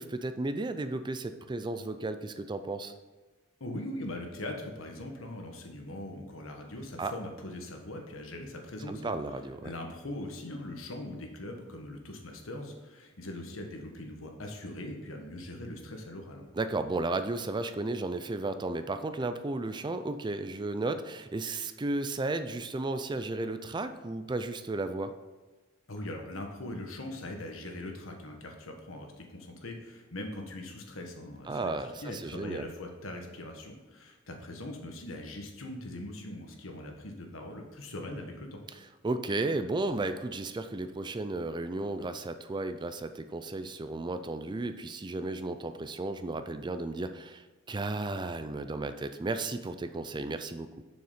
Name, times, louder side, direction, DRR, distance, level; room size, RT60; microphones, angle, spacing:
voice 1, 0.0-2.9 7.0-7.1 8.9-9.7 16.6-25.1 31.5-32.7 39.0-50.7, right 2 dB, 20° right, 10 dB, 0.4 m, -34 dB
voice 2, 3.6-9.1 9.6-16.5 25.9-38.6, left 1 dB, 85° left, 3 dB, 1.4 m, -41 dB
7.0 x 6.5 x 5.0 m, 1.2 s
head